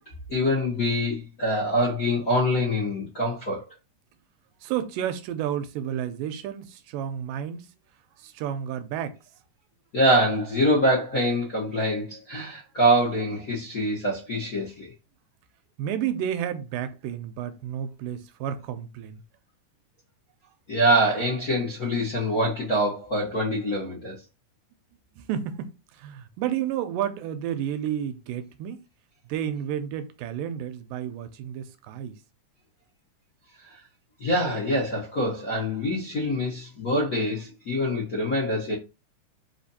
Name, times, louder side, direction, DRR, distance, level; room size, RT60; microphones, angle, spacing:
voice 1, 0.3-3.6 9.9-14.9 20.7-24.2 34.2-38.7, equal, 55° left, 0.9 m, -24 dB
voice 2, 4.6-7.7 8.2-9.2 15.8-19.2 25.2-28.8 29.3-32.1, right 10 dB, 85° right, 2.2 m, -31 dB
5.0 x 2.5 x 4.1 m
omnidirectional pair, 3.8 m